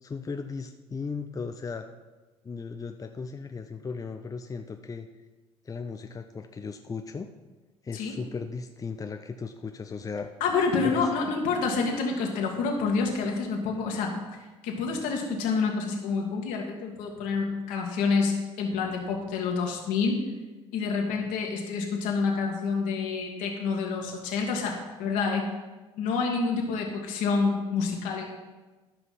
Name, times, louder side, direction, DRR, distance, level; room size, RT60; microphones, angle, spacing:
voice 1, 0.0-1.9 2.4-5.1 5.6-7.3 7.8-10.3 10.8-11.1, left 5 dB, 25° left, 6 dB, 0.7 m, -36 dB
voice 2, 10.4-14.2 14.6-20.2 20.7-25.5 26.0-28.4, left 4 dB, 65° left, 1 dB, 2.1 m, -28 dB
13.0 x 5.9 x 5.7 m, 1.2 s
hypercardioid pair, 55°, 15 cm